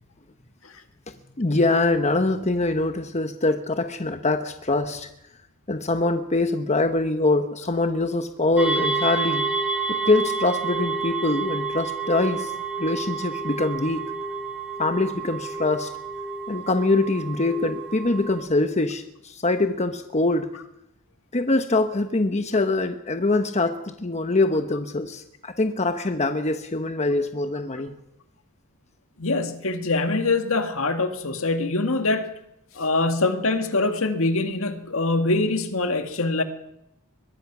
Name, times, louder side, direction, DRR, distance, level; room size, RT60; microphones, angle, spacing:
voice 1, 1.4-5.1 5.7-9.5 9.9-12.5 12.8-14.1 14.8-15.9 16.5-20.5 21.3-28.0, left 2 dB, 30° left, 7 dB, 1.1 m, -24 dB
sound 1, 8.6-18.4, right 4 dB, 5° right, 4.6 m, -29 dB
voice 2, 29.2-32.3 32.7-36.4, left 3 dB, 65° left, 7 dB, 2.0 m, -24 dB
23.0 x 20.0 x 6.1 m, 0.84 s
head